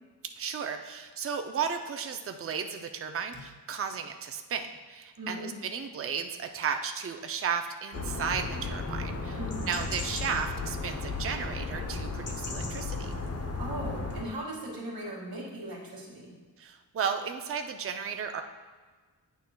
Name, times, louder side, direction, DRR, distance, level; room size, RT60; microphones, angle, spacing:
voice 1, 0.2-9.4 9.7-13.1 16.6-18.4, right 6 dB, 35° right, 6 dB, 0.4 m, -34 dB
voice 2, 5.2-5.5 9.3-9.7 13.6-16.3, right 1 dB, 60° right, -3 dB, 2.0 m, -38 dB
sound 1, 7.9-14.2, left 3 dB, 35° left, 0.7 m, -34 dB
9.2 x 6.4 x 2.2 m, 1.4 s
wide cardioid pair, 110°, 41 cm